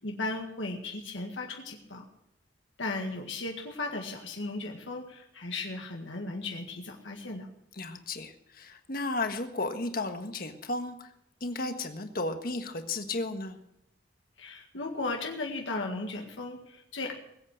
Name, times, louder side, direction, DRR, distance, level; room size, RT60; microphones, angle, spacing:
voice 1, 0.0-2.1 2.8-7.5 14.4-17.1, left 2 dB, 80° left, 1 dB, 1.9 m, -36 dB
voice 2, 7.7-11.1 11.4-13.6, left 2 dB, 50° left, 7 dB, 1.5 m, -34 dB
21.0 x 8.6 x 6.5 m, 0.80 s
head